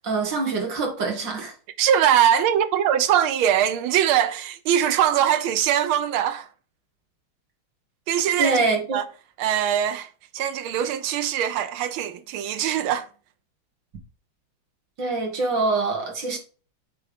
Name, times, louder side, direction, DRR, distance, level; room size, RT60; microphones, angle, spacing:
voice 1, 0.0-1.5 8.4-8.8 15.0-16.4, right 3 dB, 60° right, 2.3 m, -24 dB
voice 2, 1.8-6.5 8.1-8.6 8.9-9.0 9.4-13.1, right 10 dB, 80° right, 1.6 m, -22 dB
8.8 x 3.4 x 5.0 m
omnidirectional pair, 2.3 m